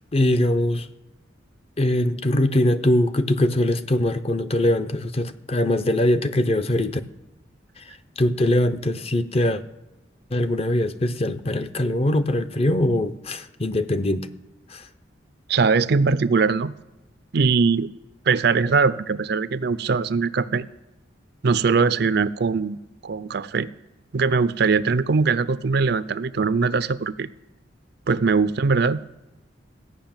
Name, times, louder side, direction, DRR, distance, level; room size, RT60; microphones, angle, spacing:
voice 1, 0.1-0.9 1.8-7.0 7.8-7.9 8.2-9.6 10.3-14.3 14.7-14.8, left 1 dB, 35° left, 11 dB, 0.6 m, -22 dB
voice 2, 15.5-16.7 17.3-17.9 18.3-20.7 21.4-23.7 24.1-27.3 28.1-29.0, right 4 dB, 60° right, 16 dB, 0.5 m, -21 dB
15.5 x 6.0 x 8.8 m, 0.99 s
head